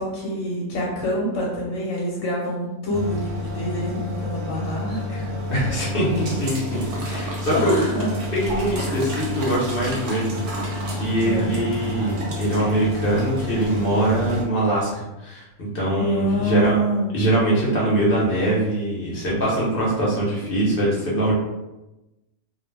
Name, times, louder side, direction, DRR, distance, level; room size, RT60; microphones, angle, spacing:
voice 1, 0.0-5.3 5.6-5.7 6.2-6.3 7.5-8.1 8.8-8.9 11.2-11.5 16.0-17.1, right 1 dB, 65° left, -4 dB, 1.0 m, -26 dB
sound 1, 2.9-14.4, equal, 60° right, 0.9 m, -29 dB
voice 2, 5.5-7.7 8.3-10.3 10.9-16.7 17.1-21.3, right 1 dB, 45° left, -5 dB, 0.8 m, -23 dB
2.5 x 2.1 x 3.2 m, 0.99 s
omnidirectional pair, 1.6 m